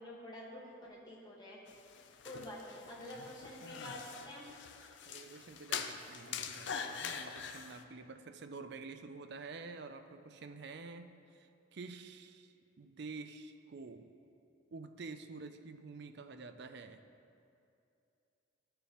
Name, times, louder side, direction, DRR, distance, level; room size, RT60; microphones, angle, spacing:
voice 1, 0.0-1.6 2.2-4.5, left 1 dB, 20° left, -5 dB, 1.6 m, -48 dB
sound 1, 1.7-7.8, left 6 dB, 65° left, 0.5 m, -44 dB
voice 2, 5.1-14.1 14.7-17.0, right 4 dB, 60° right, 8 dB, 0.5 m, -49 dB
13.5 x 6.7 x 3.1 m, 2.7 s
head